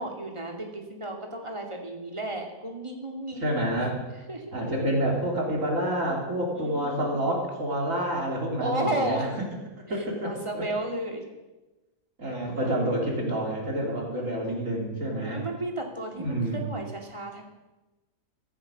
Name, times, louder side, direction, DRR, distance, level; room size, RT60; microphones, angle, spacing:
voice 1, 0.0-3.5 4.3-4.4 6.5-7.3 8.6-9.4 10.2-11.2 12.6-12.8 14.0-14.5 15.2-17.4, right 1 dB, 20° right, 2 dB, 2.5 m, -33 dB
voice 2, 3.4-4.0 4.5-9.3 9.9-10.6 12.2-15.4 16.2-16.6, right 1 dB, 55° right, -2 dB, 3.8 m, -28 dB
15.0 x 14.0 x 6.6 m, 1.1 s
omnidirectional pair, 1.7 m